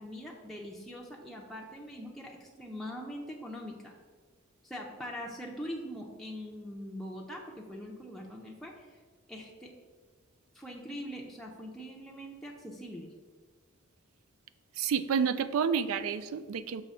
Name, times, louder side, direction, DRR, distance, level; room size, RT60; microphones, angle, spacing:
voice 1, 0.0-4.0 4.6-9.0 9.3-9.7 10.5-13.1, equal, ahead, -2 dB, 0.5 m, -42 dB
voice 2, 14.8-16.8, right 7 dB, 80° right, 13 dB, 0.4 m, -29 dB
6.3 x 3.2 x 5.4 m, 1.5 s
head